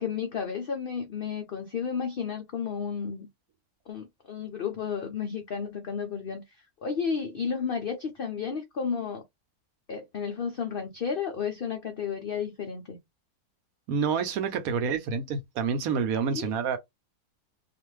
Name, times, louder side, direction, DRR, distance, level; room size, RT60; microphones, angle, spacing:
voice 1, 0.0-3.3 3.9-9.2 9.9-13.0 16.3-16.5, left 6 dB, 75° left, 0.5 m, -32 dB
voice 2, 13.9-16.8, right 6 dB, 70° right, 1.0 m, -28 dB
2.5 x 2.4 x 3.1 m
omnidirectional pair, 1.6 m